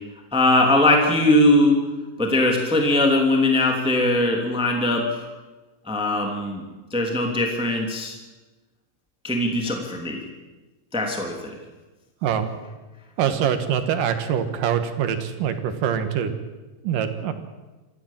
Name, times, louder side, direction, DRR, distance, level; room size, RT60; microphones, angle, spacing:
voice 1, 0.3-1.9 2.2-5.3 5.9-6.6 6.9-8.2 9.2-10.2 10.9-11.5, left 1 dB, ahead, 2 dB, 2.4 m, -20 dB
voice 2, 13.2-16.3 16.8-17.3, right 8 dB, 75° right, 8 dB, 3.0 m, -24 dB
25.0 x 15.0 x 7.5 m, 1.2 s
omnidirectional pair, 4.0 m